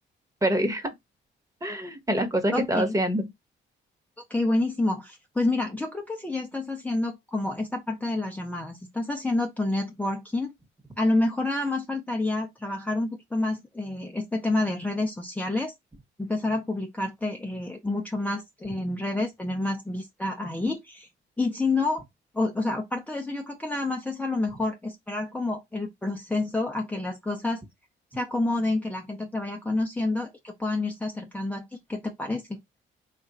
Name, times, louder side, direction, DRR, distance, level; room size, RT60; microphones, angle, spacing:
voice 1, 0.4-0.9 1.6-3.3, right 1 dB, 15° right, 1.1 m, -25 dB
voice 2, 2.5-3.0 4.3-10.5 11.0-15.7 16.2-21.1 21.4-22.0 22.3-27.6 28.1-32.6, left 2 dB, 5° left, 0.7 m, -28 dB
3.3 x 2.5 x 4.1 m
cardioid pair, 90°, 20 cm